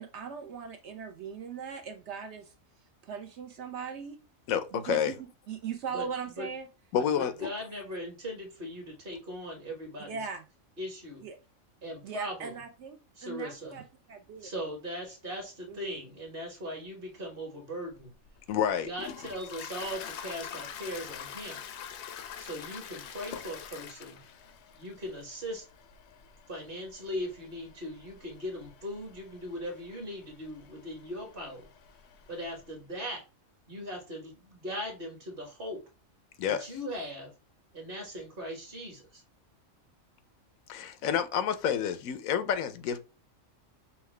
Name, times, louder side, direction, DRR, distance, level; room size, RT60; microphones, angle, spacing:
voice 1, 0.0-2.5 3.0-4.2 4.7-6.7 10.1-10.4 11.2-11.4 12.0-14.5 15.7-16.0, right 6 dB, 65° right, 0.8 m, -39 dB
voice 2, 4.5-5.1 6.9-7.5 18.5-18.9 36.4-36.7 40.7-43.0, left 8 dB, 85° left, 1.0 m, -29 dB
voice 3, 7.2-10.2 10.8-11.2 11.8-12.5 13.2-13.7 14.4-18.1 18.8-21.6 22.4-24.2 24.8-25.6 26.5-31.7 32.3-33.2 33.7-35.8 36.4-37.3 37.7-39.2, equal, 45° right, 1.4 m, -39 dB
Toilet flush, 18.0-32.7, left 8 dB, 65° left, 0.7 m, -46 dB
5.5 x 2.3 x 3.2 m
omnidirectional pair, 1.4 m